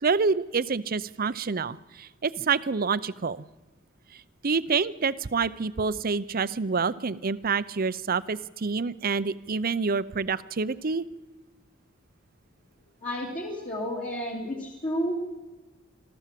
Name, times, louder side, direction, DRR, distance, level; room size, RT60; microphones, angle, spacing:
voice 1, 0.0-3.5 4.4-11.0, right 5 dB, 45° right, 16 dB, 0.6 m, -27 dB
voice 2, 13.0-15.1, equal, 40° left, -4 dB, 3.0 m, -31 dB
26.0 x 14.0 x 7.6 m, 1.2 s
head